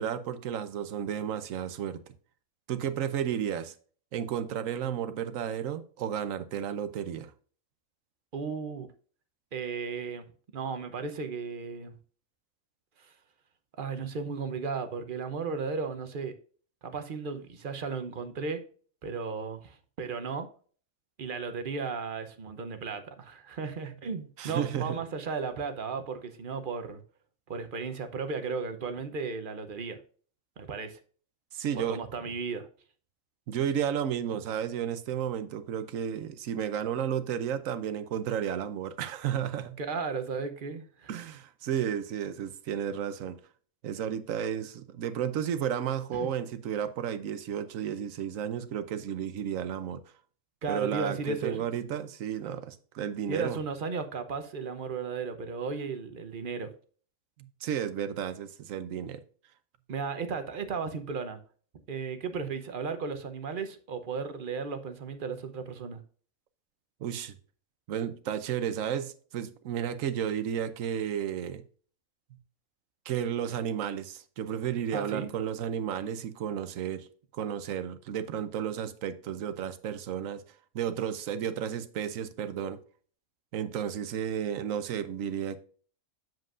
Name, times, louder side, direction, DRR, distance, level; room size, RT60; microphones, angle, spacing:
voice 1, 0.0-2.0 2.7-3.7 4.1-7.3 24.4-25.0 31.5-32.0 33.5-39.8 41.1-43.4 43.8-50.0 50.7-53.6 57.4-59.2 67.0-67.4 67.9-71.6 73.1-77.1 77.3-80.4 80.7-82.8 83.5-85.6, right 9 dB, 75° right, 1.1 m, -32 dB
voice 2, 8.3-8.9 9.5-10.3 10.5-12.0 13.0-13.1 13.8-16.3 16.8-18.6 19.0-20.5 21.2-27.0 27.5-30.0 30.6-31.0 31.7-32.7 39.8-41.2 46.2-46.3 50.6-51.6 53.3-56.7 59.9-61.4 61.9-66.0 74.9-75.3, right 5 dB, 45° right, 0.8 m, -35 dB
7.6 x 7.6 x 2.5 m
omnidirectional pair, 1.4 m